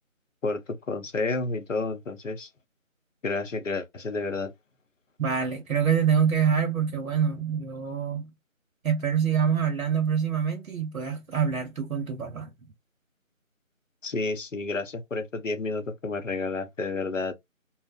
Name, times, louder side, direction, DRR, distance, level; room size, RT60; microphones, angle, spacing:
voice 1, 0.4-2.5 3.2-4.5 14.0-17.3, left 3 dB, 65° left, 0.6 m, -30 dB
voice 2, 5.2-8.3 8.8-12.5, right 7 dB, 80° right, 0.7 m, -25 dB
2.6 x 2.0 x 2.3 m
figure-of-eight pair, 175°, 41 cm